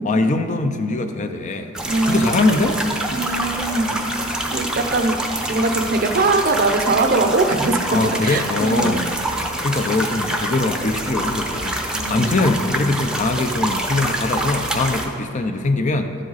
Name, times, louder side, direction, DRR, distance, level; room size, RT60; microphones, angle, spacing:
voice 1, 0.0-1.7 2.0-2.8 7.9-9.0 9.6-11.8 12.1-16.2, left 2 dB, 35° left, 7 dB, 0.5 m, -22 dB
sound 1, 1.7-15.1, right 1 dB, 5° right, 0.7 m, -26 dB
voice 2, 1.9-2.3 3.1-4.0 4.5-7.8 8.0-9.0 11.9-12.2, right 3 dB, 45° right, 6 dB, 0.6 m, -21 dB
12.5 x 7.6 x 4.0 m, 2.7 s
head